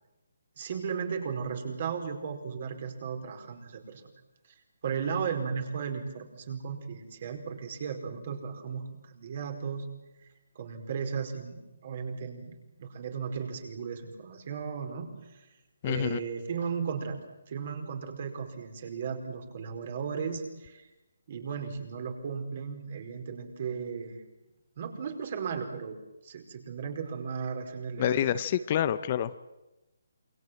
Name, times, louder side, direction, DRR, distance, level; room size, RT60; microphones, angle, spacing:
voice 1, 0.6-4.0 4.8-9.9 10.5-15.5 15.8-17.2 17.5-20.9 21.3-24.2 24.8-26.0 26.2-28.4, right 6 dB, 45° right, 5 dB, 4.8 m, -35 dB
voice 2, 15.8-16.2 28.0-29.5, left 10 dB, 30° left, 13 dB, 0.8 m, -28 dB
28.0 x 23.5 x 7.8 m, 1.0 s
hypercardioid pair, 165°, 0 cm